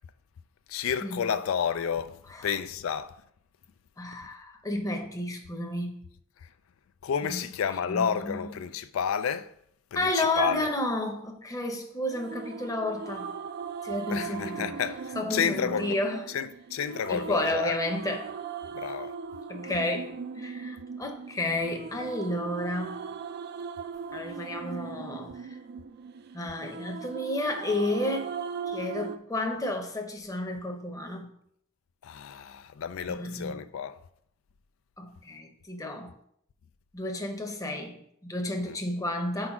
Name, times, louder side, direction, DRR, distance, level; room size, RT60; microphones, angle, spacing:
voice 1, 0.7-3.2 6.4-6.5 7.0-9.5 9.9-10.7 14.1-16.0 16.3-17.8 18.7-19.2 32.0-34.0 38.6-38.8, left 7 dB, 80° left, 0.4 m, -31 dB
voice 2, 4.0-6.0 7.2-7.4 7.9-8.4 9.9-13.3 13.8-14.7 15.2-16.2 17.1-18.3 19.5-23.1 24.1-25.5 26.3-28.3 28.7-31.3 33.1-33.5 35.0-36.1 36.9-39.5, left 1 dB, 15° left, 0.8 m, -31 dB
sound 1, 12.1-29.2, right 5 dB, 50° right, 0.4 m, -39 dB
4.8 x 4.0 x 5.8 m
head